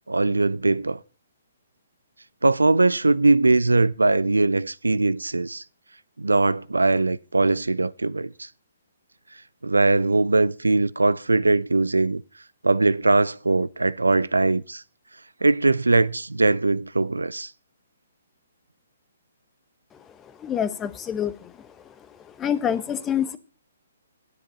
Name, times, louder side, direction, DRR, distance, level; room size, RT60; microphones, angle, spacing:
voice 1, 0.1-1.0 2.4-5.6 6.2-8.5 9.6-12.2 12.6-14.8 15.4-17.5, right 2 dB, 85° right, 0.4 m, -21 dB
voice 2, 20.4-21.5 22.3-23.4, left 9 dB, 15° left, 0.8 m, -26 dB
10.0 x 9.6 x 4.1 m
figure-of-eight pair, 130°, 0 cm